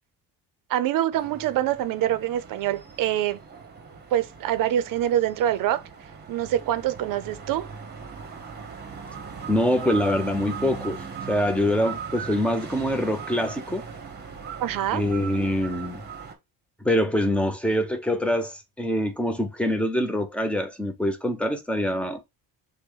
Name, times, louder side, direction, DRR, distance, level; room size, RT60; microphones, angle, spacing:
voice 1, 0.7-3.4 4.1-5.8 6.3-7.7 14.6-15.0, right 12 dB, 55° right, 0.6 m, -25 dB
sound 1, 1.1-16.3, right 6 dB, 25° right, 0.9 m, -39 dB
voice 2, 9.5-13.8 14.9-16.0 16.8-22.2, left 1 dB, 5° left, 0.4 m, -25 dB
5.9 x 2.1 x 3.8 m
cardioid pair, 155°, 40 cm